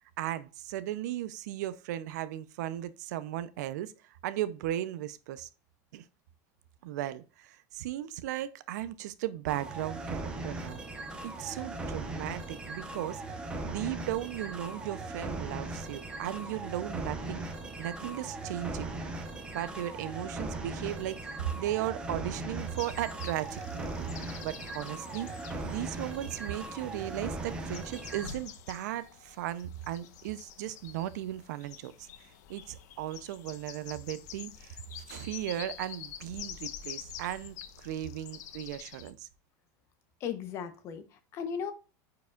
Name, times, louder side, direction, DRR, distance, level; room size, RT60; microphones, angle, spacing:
voice 1, 0.2-5.5 5.9-6.0 6.8-10.8 11.2-13.2 13.6-17.4 17.8-18.9 19.5-24.1 24.4-25.3 25.6-39.3, right 13 dB, 70° right, 0.6 m, -36 dB
sound 1, 9.5-28.3, right 2 dB, 10° right, 0.8 m, -39 dB
sound 2, 22.8-39.1, left 9 dB, 70° left, 0.9 m, -47 dB
voice 2, 40.2-41.7, left 7 dB, 30° left, 0.8 m, -36 dB
9.3 x 4.8 x 2.4 m
supercardioid pair, 175°, 10 cm